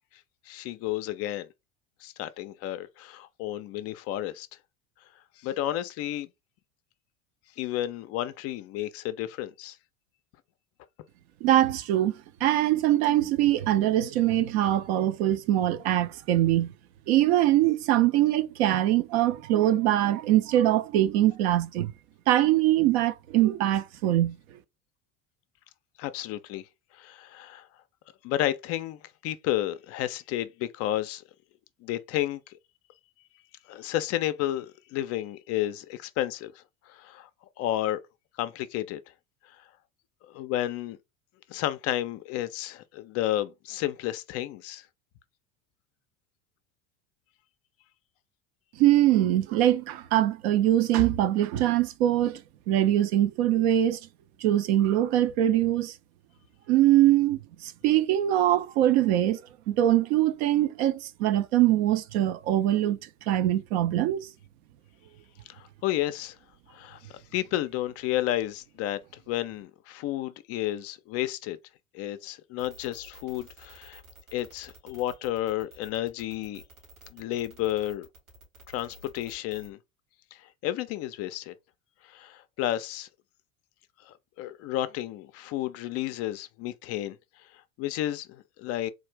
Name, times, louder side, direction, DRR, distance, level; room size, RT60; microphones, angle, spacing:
voice 1, 0.1-1.5 2.0-4.5 5.4-6.3 7.6-9.8 26.0-26.7 26.9-27.7 28.2-31.2 31.8-32.6 33.7-37.3 37.6-38.0 38.4-39.0 39.4-39.6 40.3-41.0 41.5-44.9 65.5-66.4 66.7-71.6 71.9-74.0 74.3-76.6 77.1-78.1 78.7-79.8 80.3-81.5 82.0-83.1 84.0-88.9, left 13 dB, 40° left, 0.4 m, -32 dB
voice 2, 11.4-16.7 17.1-21.9 22.3-24.4 48.8-52.4 52.7-54.0 54.4-55.9 56.7-59.4 59.7-63.0 63.3-64.3, right 13 dB, 55° right, 0.5 m, -23 dB
sound 1, 72.6-79.7, right 1 dB, 85° right, 2.2 m, -51 dB
3.7 x 2.4 x 3.3 m
figure-of-eight pair, 75°, 40 cm